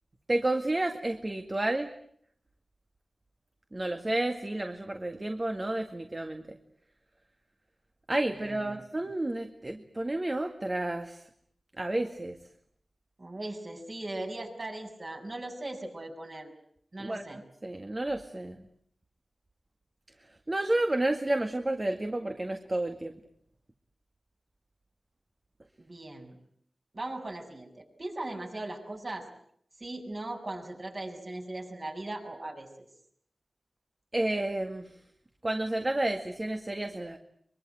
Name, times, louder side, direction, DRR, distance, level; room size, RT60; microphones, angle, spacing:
voice 1, 0.3-1.9 3.7-6.6 8.1-11.2 11.8-12.4 17.0-18.6 20.5-23.1 34.1-34.9 35.4-37.2, right 1 dB, 30° right, 6 dB, 2.0 m, -31 dB
voice 2, 8.3-8.8 13.2-16.5 16.9-17.4 25.8-26.4 26.9-29.3 29.8-32.7, right 2 dB, 45° right, 3 dB, 6.9 m, -39 dB
24.0 x 23.0 x 9.1 m, 0.66 s
wide cardioid pair, 60°, 0 cm